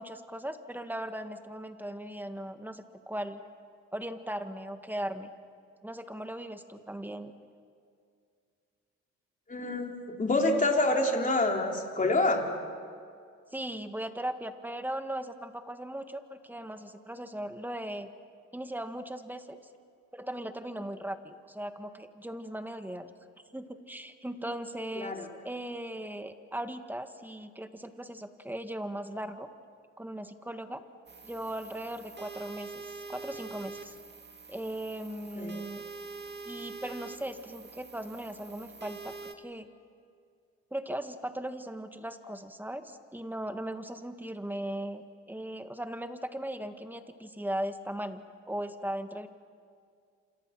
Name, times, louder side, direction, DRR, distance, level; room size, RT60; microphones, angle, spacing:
voice 1, 0.0-3.4 3.9-5.3 5.8-7.3 13.5-18.1 18.5-19.6 20.1-23.1 23.5-29.5 30.0-30.8 31.2-33.9 34.5-35.8 36.4-39.7 40.7-49.3, right 1 dB, 5° right, 8 dB, 1.7 m, -38 dB
voice 2, 9.5-12.4 25.0-25.3 35.4-35.5, left 2 dB, 25° left, 1 dB, 3.8 m, -27 dB
sound 1, 31.1-39.3, right 4 dB, 35° right, 2.3 m, -45 dB
28.5 x 27.5 x 6.1 m, 2.3 s
cardioid pair, 90°, 30 cm